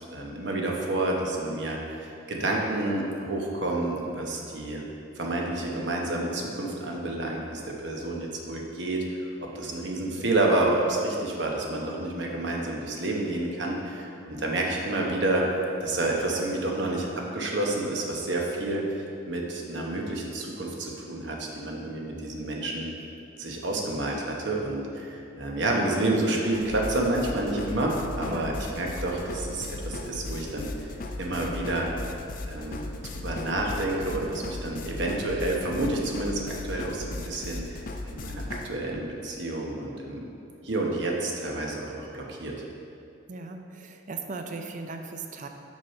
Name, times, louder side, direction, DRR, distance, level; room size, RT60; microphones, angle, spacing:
voice 1, 0.1-4.8 5.2-9.0 9.5-15.5 15.8-19.0 19.3-22.9 23.4-30.7 31.2-31.9 32.5-32.8 33.2-37.6 38.1-40.3 40.6-42.5, right 2 dB, 60° right, -1 dB, 1.0 m, -29 dB
sound 1, 26.5-38.7, left 2 dB, 45° left, 0.4 m, -37 dB
voice 2, 28.2-28.5 43.3-45.5, right 3 dB, 40° right, 5 dB, 0.5 m, -37 dB
6.1 x 5.6 x 4.3 m, 2.6 s
head